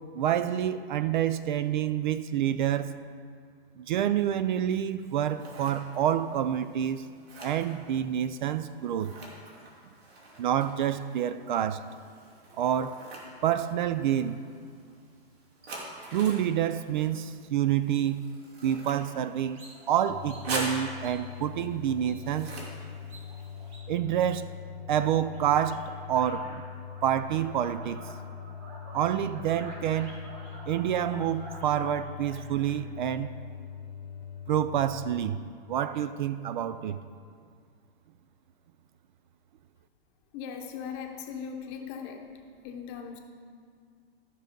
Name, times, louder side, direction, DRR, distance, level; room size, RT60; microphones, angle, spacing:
voice 1, 0.1-2.9 3.8-7.0 7.4-9.1 10.4-11.8 12.6-13.0 13.4-14.3 16.1-18.2 18.6-19.6 19.9-22.5 23.9-24.5 24.9-26.6 27.0-28.0 28.9-30.2 30.7-33.3 34.5-35.4 35.7-37.0, right 10 dB, 55° right, 13 dB, 0.4 m, -28 dB
Scissors, 5.0-23.8, right 2 dB, 90° right, 2.8 m, -44 dB
sound 1, 19.5-24.8 25.1-26.6 26.9-32.8, right 2 dB, 20° right, 1.7 m, -50 dB
sound 2, 20.1-35.4, left 7 dB, 90° left, 1.0 m, -42 dB
voice 2, 40.3-42.3 42.6-43.2, left 7 dB, 30° left, 3 dB, 0.9 m, -39 dB
13.5 x 6.1 x 5.2 m, 2.1 s
supercardioid pair, 165°, 30 cm